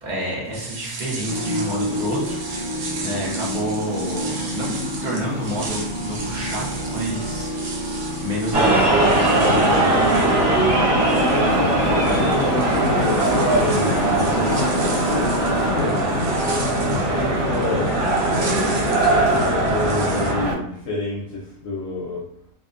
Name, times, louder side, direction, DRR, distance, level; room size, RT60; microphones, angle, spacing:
voice 1, 0.0-7.8 8.2-9.8, equal, 45° right, -4 dB, 0.6 m, -29 dB
sound 1, 0.5-20.3, right 3 dB, 85° right, 1.1 m, -36 dB
sound 2, 1.3-15.7, equal, 30° left, 1.2 m, -28 dB
sound 3, 8.5-20.5, right 1 dB, 60° right, 1.4 m, -20 dB
voice 2, 9.2-10.7 11.1-16.0 16.5-18.3 19.0-22.3, left 1 dB, 70° left, -5 dB, 0.9 m, -28 dB
2.6 x 2.1 x 2.5 m, 0.70 s
omnidirectional pair, 1.6 m